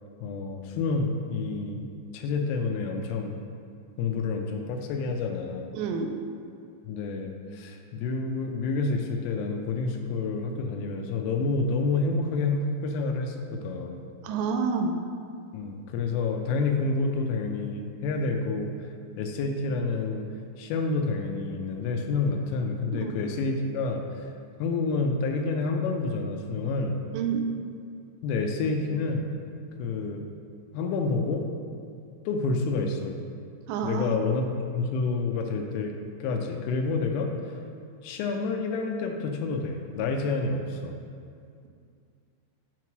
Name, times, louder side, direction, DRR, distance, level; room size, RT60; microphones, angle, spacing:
voice 1, 0.2-1.9 2.1-3.4 4.0-5.7 6.8-14.0 15.5-18.7 19.2-20.3 20.6-24.2 24.6-27.0 28.2-29.3 29.8-30.3 30.7-31.5 32.3-33.2 33.8-35.9 36.2-37.5 38.0-41.0, left 3 dB, 90° left, 3 dB, 3.1 m, -28 dB
voice 2, 5.7-6.1 14.2-15.0 22.9-23.1 27.1-27.4 33.7-34.1, right 5 dB, 85° right, 5 dB, 3.1 m, -28 dB
7.2 x 3.0 x 5.9 m, 2.3 s
omnidirectional pair, 5.6 m